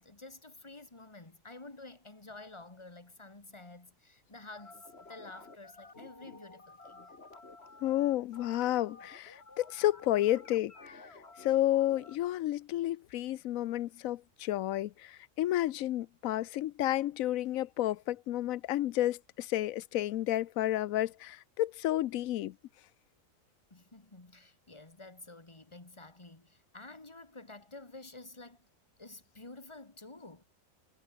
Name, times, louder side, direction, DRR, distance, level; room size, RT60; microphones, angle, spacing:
voice 1, 0.0-7.1 23.7-28.7 29.0-30.4, left 2 dB, 20° left, 2.0 m, -50 dB
sound 1, 4.6-12.2, left 3 dB, 50° left, 3.1 m, -52 dB
voice 2, 7.8-10.9 11.4-14.9 15.4-22.5, left 14 dB, 85° left, 1.0 m, -31 dB
omnidirectional pair, 1.4 m